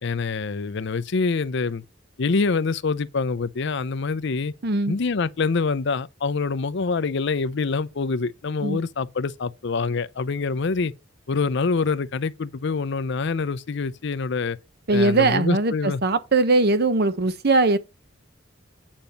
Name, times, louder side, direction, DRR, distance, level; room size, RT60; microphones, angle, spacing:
voice 1, 0.0-1.8 2.2-4.5 4.9-10.9 11.3-14.6 14.9-16.0, left 4 dB, 65° left, 0.6 m, -25 dB
voice 2, 4.6-4.9 8.6-8.8 14.9-17.8, right 3 dB, 55° right, 0.9 m, -20 dB
8.9 x 5.1 x 5.6 m
head